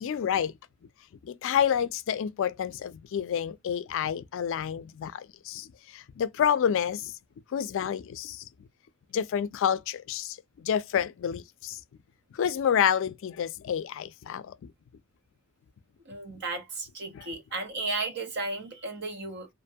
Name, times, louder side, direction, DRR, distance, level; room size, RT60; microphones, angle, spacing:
voice 1, 0.0-0.5 1.2-7.1 7.5-8.4 9.1-11.8 12.3-14.6 17.1-17.3, left 8 dB, 65° left, 0.3 m, -29 dB
voice 2, 16.1-19.5, right 3 dB, 55° right, 0.8 m, -34 dB
2.5 x 2.2 x 2.6 m
head